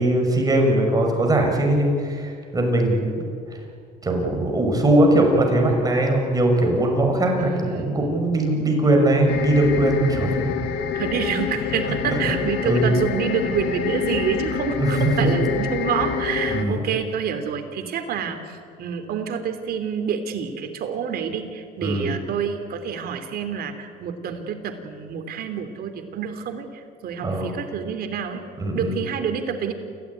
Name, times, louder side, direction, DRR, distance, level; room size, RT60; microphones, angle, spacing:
voice 1, 0.0-3.2 4.0-10.3 12.2-12.3 12.6-12.9 14.8-14.9 16.5-16.8 21.8-22.1 27.2-27.5 28.6-28.9, right 1 dB, 20° right, 2 dB, 5.9 m, -20 dB
voice 2, 7.4-8.3 10.9-28.4 28.7-29.7, right 7 dB, 65° right, 7 dB, 3.1 m, -28 dB
sound 1, 9.3-16.6, left 7 dB, 85° left, 2.0 m, -26 dB
28.5 x 15.5 x 9.8 m, 2.3 s
cardioid pair, 110°, 17 cm